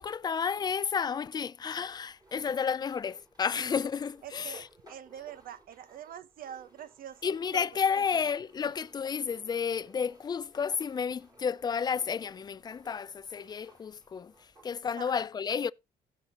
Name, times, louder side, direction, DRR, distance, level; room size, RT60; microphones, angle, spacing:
voice 1, 0.0-4.7 7.2-15.7, left 6 dB, 25° left, 0.4 m, -31 dB
sound 1, 1.5-14.7, right 2 dB, 25° right, 5.1 m, -60 dB
voice 2, 4.2-7.7 8.1-8.3 15.0-15.1, right 10 dB, 60° right, 0.9 m, -45 dB
16.0 x 6.5 x 2.9 m
cardioid pair, 110°, 17 cm